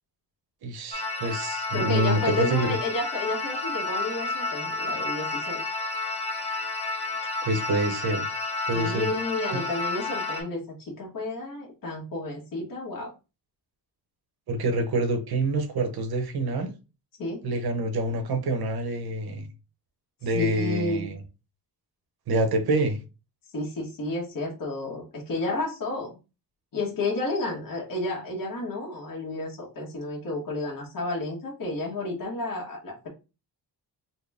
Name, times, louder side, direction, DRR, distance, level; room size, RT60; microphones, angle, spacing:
voice 1, 0.6-2.8 7.4-8.3 8.7-9.1 9.5-9.6 14.5-16.7 17.4-19.5 20.2-21.2 22.3-23.0, right 2 dB, 60° right, 0.9 m, -26 dB
sound 1, 0.9-10.4, left 3 dB, 15° left, 0.7 m, -31 dB
voice 2, 1.7-5.6 8.7-13.1 17.2-17.4 20.3-21.1 23.5-26.1 26.7-33.1, left 2 dB, 50° left, 1.2 m, -31 dB
4.2 x 2.1 x 3.4 m
wide cardioid pair, 165°, 42 cm